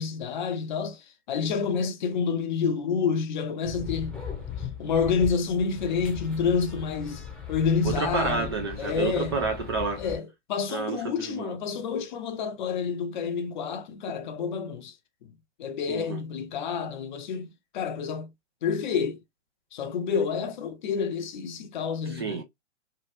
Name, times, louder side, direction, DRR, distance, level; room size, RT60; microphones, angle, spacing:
voice 1, 0.0-4.2 4.6-9.4 10.0-15.0 15.2-15.3 15.6-18.3 18.6-19.2 19.7-22.4, left 6 dB, 40° left, 0.7 m, -29 dB
sound 1, 3.6-10.2, left 7 dB, 5° left, 0.8 m, -38 dB
voice 2, 7.8-10.0 10.7-11.5 15.9-16.2 22.1-22.4, right 5 dB, 25° right, 0.3 m, -30 dB
3.3 x 2.3 x 3.0 m
figure-of-eight pair, 120°, 36 cm